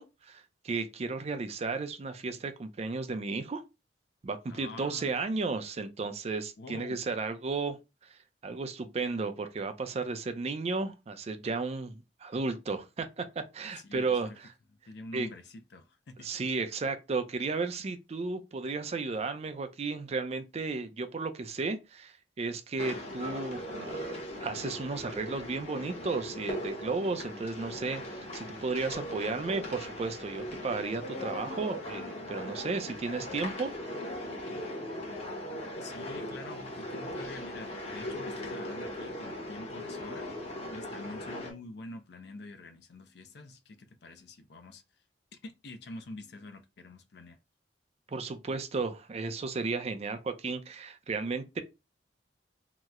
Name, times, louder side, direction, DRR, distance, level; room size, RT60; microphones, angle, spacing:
voice 1, 0.0-3.6 4.2-14.5 15.1-15.3 16.2-33.9 48.1-51.6, right 4 dB, 35° right, 0.4 m, -34 dB
voice 2, 4.5-5.2 6.6-7.0 13.8-14.4 14.9-16.3 35.8-40.3 40.7-44.8 45.3-47.4, left 2 dB, 65° left, 0.5 m, -46 dB
sound 1, 22.8-41.5, left 1 dB, 35° left, 0.8 m, -39 dB
2.9 x 2.0 x 3.5 m
head